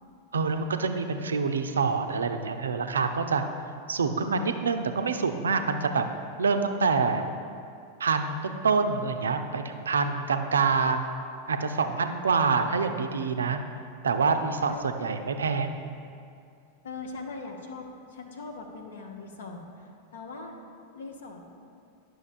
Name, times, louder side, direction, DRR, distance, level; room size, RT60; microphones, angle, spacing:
voice 1, 0.3-3.4 3.9-6.0 6.4-7.3 8.0-11.1 11.5-13.6 14.0-15.8, right 4 dB, 70° right, 7 dB, 0.4 m, -26 dB
voice 2, 16.8-20.5 21.0-21.5, left 3 dB, 65° left, 2 dB, 0.6 m, -41 dB
10.5 x 6.2 x 2.4 m, 2.4 s
figure-of-eight pair, 90°, 0 cm